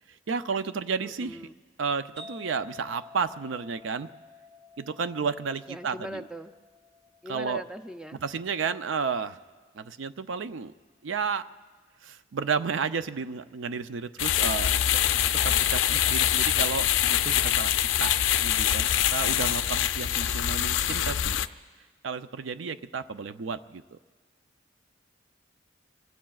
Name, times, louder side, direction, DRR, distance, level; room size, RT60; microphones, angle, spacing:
voice 1, 0.3-1.4 1.8-4.1 4.8-6.2 7.3-7.6 8.2-9.4 9.7-10.7 11.0-11.4 12.0-14.8 15.4-17.7 18.0-18.1 18.4-21.4 22.0-24.0, right 5 dB, 80° right, 11 dB, 0.5 m, -32 dB
voice 2, 1.0-1.6 5.7-6.5 7.2-8.2 15.9-16.0, equal, 5° right, 8 dB, 0.4 m, -40 dB
sound 1, 2.2-9.6, left 3 dB, 35° right, 2.8 m, -51 dB
sound 2, 14.2-21.5, left 11 dB, 90° left, 0.4 m, -24 dB
26.0 x 23.5 x 2.4 m, 1.4 s
head